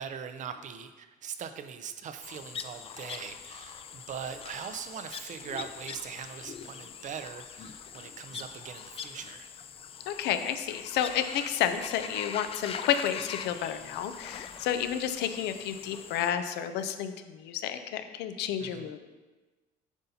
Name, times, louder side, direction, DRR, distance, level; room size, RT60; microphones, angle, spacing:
voice 1, 0.0-9.5 18.6-18.9, right 7 dB, 50° right, 9 dB, 0.5 m, -41 dB
sound 1, 2.2-16.3, left 7 dB, 35° left, 0.3 m, -43 dB
voice 2, 10.1-19.0, left 9 dB, 85° left, 9 dB, 0.5 m, -31 dB
7.9 x 5.6 x 2.7 m, 1.2 s
cardioid pair, 110°, 17 cm